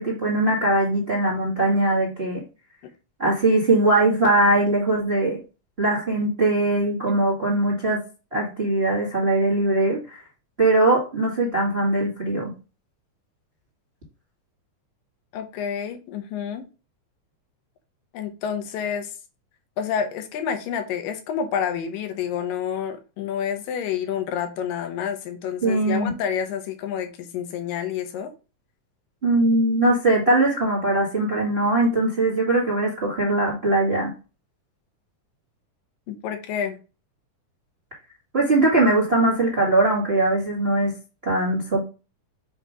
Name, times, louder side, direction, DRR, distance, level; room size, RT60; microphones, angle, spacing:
voice 1, 0.0-2.4 3.2-5.4 5.8-8.0 8.3-10.2 10.6-12.5 25.6-26.1 29.2-34.1 38.3-40.9 41.2-41.9, right 2 dB, 25° right, 1.4 m, -21 dB
voice 2, 15.3-16.7 18.1-19.1 19.8-28.3 36.1-36.8, left 8 dB, 80° left, 2.5 m, -29 dB
7.8 x 2.9 x 4.8 m
omnidirectional pair, 4.0 m